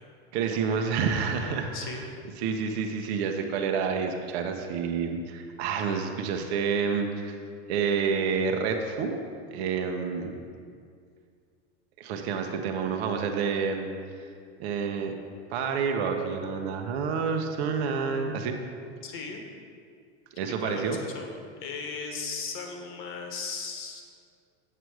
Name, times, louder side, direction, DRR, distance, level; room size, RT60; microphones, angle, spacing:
voice 1, 0.3-2.0 2.4-7.4 7.7-9.2 9.5-10.4 12.0-13.9 14.2-14.3 14.6-15.2 15.5-18.6 20.4-21.0, right 5 dB, 60° right, 4 dB, 1.0 m, -29 dB
voice 2, 1.7-2.2 19.0-19.4 20.6-21.3 21.6-24.0, left 5 dB, 35° left, 3 dB, 1.2 m, -37 dB
7.9 x 7.8 x 4.8 m, 2.2 s
supercardioid pair, 155°, 36 cm